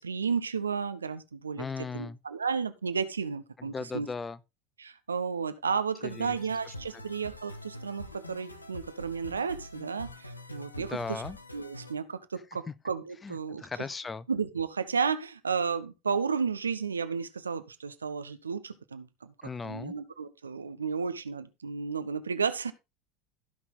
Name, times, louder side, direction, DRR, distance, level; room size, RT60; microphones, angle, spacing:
voice 1, 0.0-1.6 1.9-4.1 4.8-11.2 11.5-13.6 14.3-19.3 19.6-22.7, right 5 dB, 80° right, 0.8 m, -33 dB
voice 2, 1.6-2.2 3.6-4.4 6.0-6.4 6.7-7.0 10.8-11.4 12.7-12.8 13.2-14.3 19.4-19.9, left 4 dB, 20° left, 0.7 m, -38 dB
sound 1, 6.1-11.9, left 1 dB, 85° left, 1.1 m, -45 dB
15.0 x 5.9 x 4.1 m
figure-of-eight pair, 70°, 0 cm